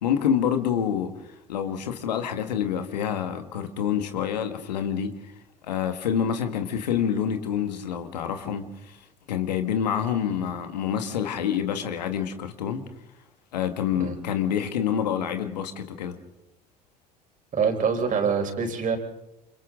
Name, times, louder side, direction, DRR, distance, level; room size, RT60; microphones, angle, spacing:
voice 1, 0.0-5.3 5.6-9.0 9.3-12.9 13.5-16.2, left 8 dB, 80° left, 1.8 m, -27 dB
voice 2, 17.5-19.0, right 6 dB, 40° right, 4.5 m, -25 dB
28.5 x 27.5 x 3.9 m
hypercardioid pair, 65°, 21 cm